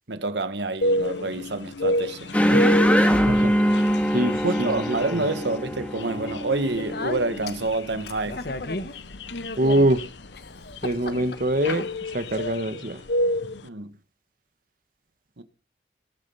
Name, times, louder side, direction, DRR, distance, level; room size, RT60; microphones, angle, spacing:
voice 1, 0.1-2.6 2.9-3.1 4.4-8.4 11.1-11.3 13.6-13.9 15.4-15.5, right 2 dB, 75° right, 1.4 m, -28 dB
sound 1, 0.8-13.7, left 1 dB, 80° left, 0.9 m, -30 dB
sound 2, 2.3-7.3, equal, 10° left, 1.9 m, -22 dB
voice 2, 4.1-5.2 9.6-10.0 10.8-11.9 12.1-13.0, right 1 dB, 50° right, 1.3 m, -24 dB
Speech, 6.5-12.6, left 2 dB, 55° left, 1.3 m, -36 dB
19.5 x 8.8 x 5.6 m
head